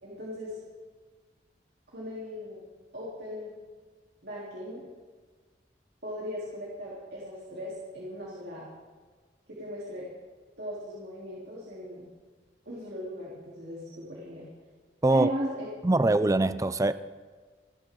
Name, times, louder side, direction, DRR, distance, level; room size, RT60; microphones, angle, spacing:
voice 1, 0.0-0.6 1.9-2.6 2.9-3.5 4.2-4.8 6.0-8.7 9.5-10.1 10.6-12.1 12.7-14.5 15.1-15.7, equal, 70° right, 3.5 m, -37 dB
voice 2, 15.8-16.9, right 2 dB, 20° right, 0.4 m, -23 dB
29.0 x 10.0 x 3.8 m
head